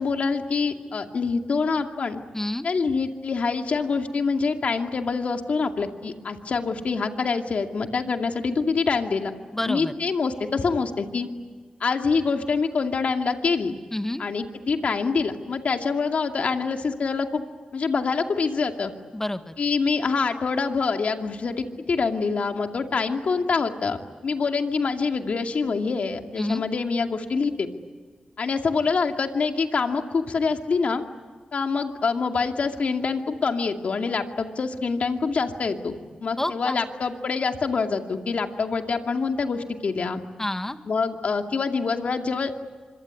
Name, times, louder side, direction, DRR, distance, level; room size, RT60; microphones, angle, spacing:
voice 1, 0.0-2.2 2.6-9.3 9.6-11.3 11.8-13.8 14.2-17.4 17.7-18.9 19.6-24.0 24.2-27.7 28.4-31.0 31.5-40.2 40.9-42.6, left 4 dB, 65° left, 5 dB, 2.4 m, -25 dB
voice 2, 2.3-2.7 9.5-9.9 13.9-14.2 19.1-19.5 26.4-26.6 36.4-36.8 40.4-40.8, left 1 dB, 15° left, 8 dB, 1.9 m, -29 dB
26.0 x 23.5 x 9.7 m, 1.5 s
cardioid pair, 55°, 2 cm